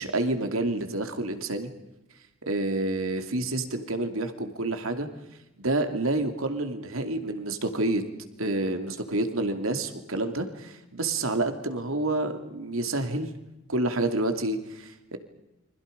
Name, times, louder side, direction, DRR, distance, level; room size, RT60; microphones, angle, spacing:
voice 1, 0.0-1.7 2.5-5.1 5.6-8.0 8.4-13.3 13.7-15.2, right 2 dB, 80° right, 7 dB, 2.7 m, -28 dB
29.5 x 25.5 x 5.3 m, 0.95 s
head